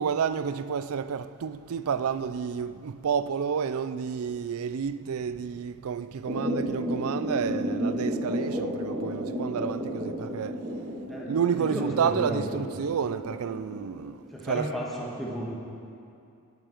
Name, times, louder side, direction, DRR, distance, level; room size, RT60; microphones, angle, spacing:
voice 1, 0.0-10.6 11.3-14.7, right 7 dB, 80° right, 0.4 m, -30 dB
sound 1, 6.3-14.0, equal, 25° right, 1.9 m, -32 dB
voice 2, 11.1-12.6 14.3-15.5, equal, ahead, 1.5 m, -33 dB
19.0 x 6.9 x 4.5 m
head